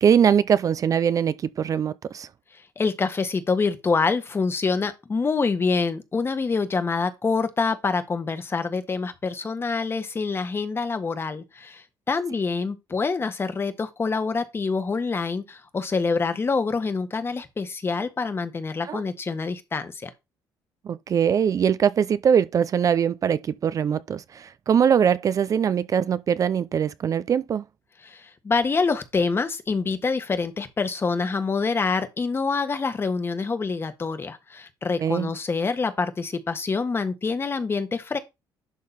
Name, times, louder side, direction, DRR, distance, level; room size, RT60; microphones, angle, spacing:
voice 1, 0.0-2.3 18.9-19.0 20.8-27.6 35.0-35.3, right 8 dB, 40° right, 0.5 m, -22 dB
voice 2, 2.8-20.1 28.0-38.2, left 4 dB, 30° left, 1.4 m, -26 dB
11.0 x 3.8 x 4.2 m
cardioid pair, 105°, 8 cm